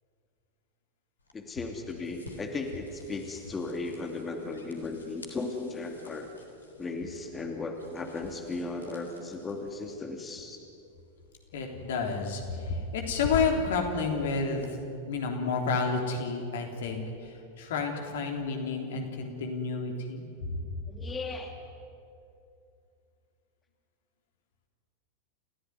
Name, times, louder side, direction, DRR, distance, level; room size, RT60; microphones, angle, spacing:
sound 1, 1.2-14.7, left 2 dB, 75° left, 3.6 m, -47 dB
voice 1, 1.3-6.3 6.8-10.6 20.9-21.5, left 3 dB, 15° left, 3 dB, 2.7 m, -36 dB
voice 2, 11.5-14.8 15.1-20.2, left 4 dB, 55° left, 3 dB, 3.5 m, -30 dB
29.5 x 16.0 x 9.5 m, 2.5 s
figure-of-eight pair, 90°, 0 cm